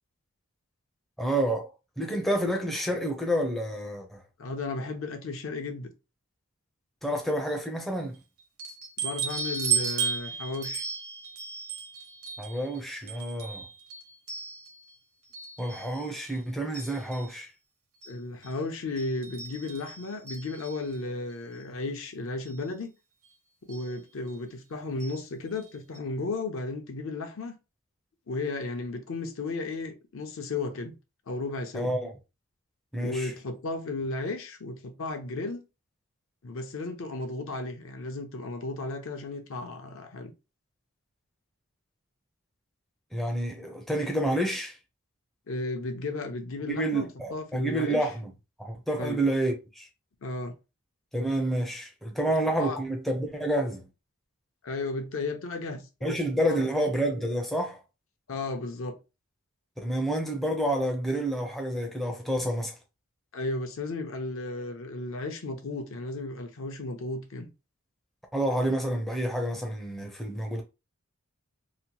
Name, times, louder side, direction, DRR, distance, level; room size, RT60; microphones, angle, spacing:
voice 1, 1.2-4.2 7.0-8.2 12.4-13.7 15.6-17.5 31.7-32.1 32.9-33.3 43.1-44.8 46.7-48.3 48.6-49.9 51.1-53.9 56.0-57.8 59.8-62.8 68.3-70.6, right 1 dB, ahead, 0.4 m, -29 dB
voice 2, 4.4-5.9 9.0-10.8 18.1-22.9 23.6-27.5 28.3-30.9 31.3-31.9 33.0-35.6 36.4-40.3 45.5-48.0 49.0-49.2 50.2-50.5 52.6-52.8 54.6-56.2 56.5-56.7 58.3-59.0 63.3-67.5, left 2 dB, 60° left, 0.5 m, -34 dB
sound 1, 8.6-14.9 15.3-16.4 16.7-17.3 18.0-18.1 18.4-18.5 19.0-20.9 22.0-22.1 22.4-22.6 23.7-23.9 25.0-25.2 25.5-25.6 25.9-26.0, right 6 dB, 75° right, 0.9 m, -35 dB
2.8 x 2.1 x 2.9 m
head